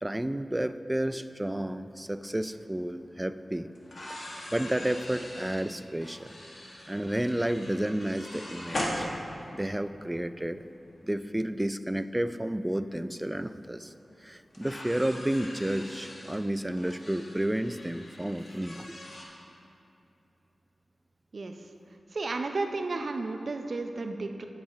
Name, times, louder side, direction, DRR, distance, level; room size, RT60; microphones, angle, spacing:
voice 1, 0.0-3.7 4.5-6.3 6.9-9.1 9.5-10.6 11.0-13.9 14.2-18.9, right 1 dB, 15° right, 12 dB, 0.3 m, -31 dB
sound 1, 2.5-2.6 3.7-9.7 11.0-11.1 12.9-13.0 13.3-13.4 14.5-19.2, left 1 dB, 60° left, 1.4 m, -40 dB
voice 2, 22.1-24.5, right 3 dB, 65° right, 6 dB, 0.6 m, -32 dB
9.9 x 5.5 x 4.9 m, 2.8 s
cardioid pair, 55°, 0 cm